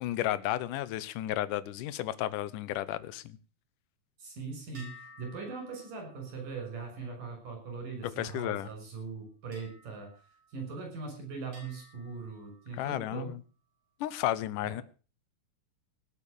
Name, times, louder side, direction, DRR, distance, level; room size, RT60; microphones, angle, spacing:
voice 1, 0.0-3.4 8.2-8.7 12.8-13.4 14.0-14.8, left 13 dB, 80° left, 16 dB, 2.4 m, -33 dB
voice 2, 4.2-10.1 10.5-13.3 14.6-14.7, right 4 dB, 75° right, 4 dB, 7.9 m, -40 dB
sound 1, 4.7-8.4 9.5-11.1 11.5-13.2, left 1 dB, 45° right, 5.7 m, -57 dB
18.0 x 8.1 x 6.8 m, 0.37 s
omnidirectional pair, 3.7 m